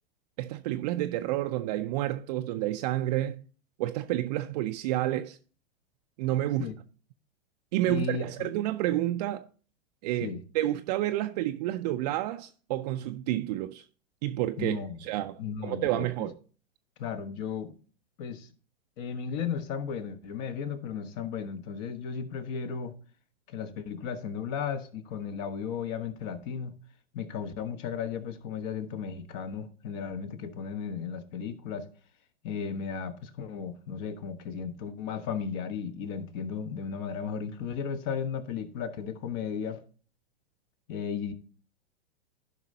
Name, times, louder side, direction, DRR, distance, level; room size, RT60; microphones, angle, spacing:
voice 1, 0.4-3.4 3.8-5.4 6.2-6.7 7.7-9.5 10.0-13.8 14.2-16.4, right 14 dB, 40° right, 0.5 m, -30 dB
voice 2, 7.9-8.5 10.2-10.4 14.6-15.0 15.4-16.3 17.0-17.7 18.2-18.5 19.0-22.9 23.5-26.7 27.1-31.9 32.4-39.8 40.9-41.3, left 6 dB, 45° left, 1.3 m, -35 dB
15.0 x 5.5 x 2.7 m
hypercardioid pair, 105°, 31 cm